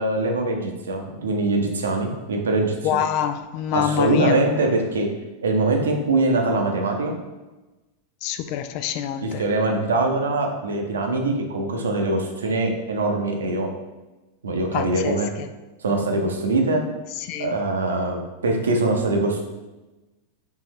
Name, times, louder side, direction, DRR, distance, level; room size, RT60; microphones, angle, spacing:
voice 1, 0.0-3.0 3.7-5.1 5.4-7.2 9.2-13.7 14.4-15.3 15.8-16.8 17.4-19.4, right 2 dB, 65° right, 2 dB, 0.7 m, -23 dB
voice 2, 2.8-4.5 8.2-9.4 14.7-15.5 17.2-17.5, left 10 dB, 45° left, 9 dB, 0.3 m, -26 dB
4.7 x 3.5 x 3.1 m, 1.1 s
figure-of-eight pair, 90°, 0 cm